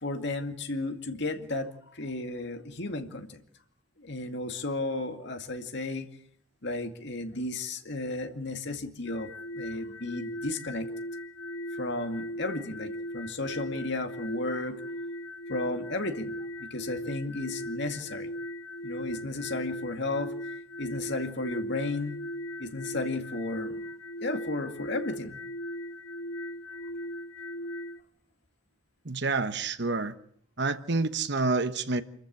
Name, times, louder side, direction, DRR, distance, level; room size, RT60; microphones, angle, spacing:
voice 1, 0.0-3.4 4.0-6.1 6.6-10.9 11.7-14.8 15.5-18.3 18.8-20.3 20.8-22.2 22.6-23.8 24.2-25.4, left 2 dB, 55° left, 2.2 m, -34 dB
sound 1, 9.1-28.0, equal, 80° left, 0.8 m, -38 dB
voice 2, 29.0-30.1 30.6-32.0, right 3 dB, 55° right, 1.2 m, -28 dB
27.5 x 14.5 x 8.7 m
head